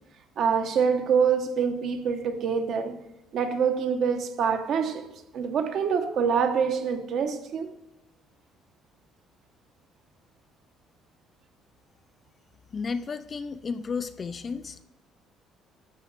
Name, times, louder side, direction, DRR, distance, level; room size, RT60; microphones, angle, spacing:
voice 1, 0.4-3.0 3.3-5.1 5.3-7.7, right 6 dB, 45° right, 1.0 m, -25 dB
voice 2, 12.7-14.8, left 5 dB, 25° left, 0.4 m, -33 dB
12.0 x 7.1 x 6.5 m
cardioid pair, 175°, 0 cm